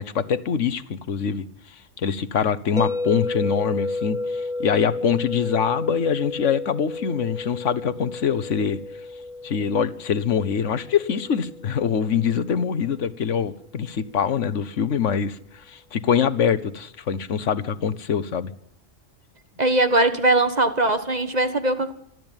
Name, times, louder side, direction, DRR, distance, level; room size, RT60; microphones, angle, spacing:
voice 1, 0.0-1.4 2.0-8.8 9.4-18.5, left 7 dB, 70° left, 1.4 m, -24 dB
sound 1, 2.8-12.8, left 2 dB, 5° right, 0.9 m, -32 dB
voice 2, 19.6-21.9, right 2 dB, 35° right, 1.5 m, -20 dB
27.5 x 12.5 x 9.0 m
omnidirectional pair, 1.3 m